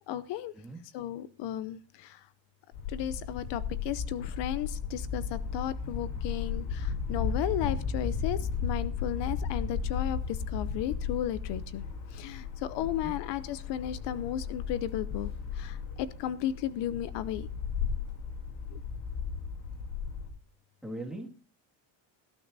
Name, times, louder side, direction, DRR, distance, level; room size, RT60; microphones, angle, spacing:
voice 1, 0.1-0.5 0.9-2.2 2.9-11.8 12.1-15.3 15.5-17.5 18.7-18.8, left 11 dB, 65° left, 14 dB, 0.7 m, -34 dB
sound 1, 2.7-20.3, left 6 dB, 80° left, 3.2 m, -35 dB
voice 2, 12.8-13.1 20.8-21.3, right 1 dB, ahead, -1 dB, 2.0 m, -40 dB
19.0 x 12.5 x 2.7 m, 0.37 s
cardioid pair, 180°, 46 cm